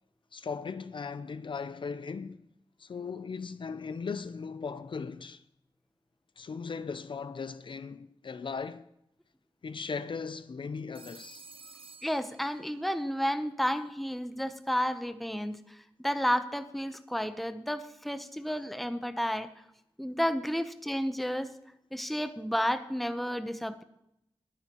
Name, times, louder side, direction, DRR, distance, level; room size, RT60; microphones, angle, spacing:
voice 1, 0.3-2.4 2.8-5.4 6.4-8.9 9.6-11.4, left 5 dB, 60° left, 0.5 m, -38 dB
Telephone, 10.9-13.0, right 4 dB, 70° right, 0.8 m, -52 dB
voice 2, 12.0-19.5 20.0-21.5 21.9-23.8, equal, ahead, 0.8 m, -31 dB
20.5 x 9.8 x 3.0 m
wide cardioid pair, 125°, 10 cm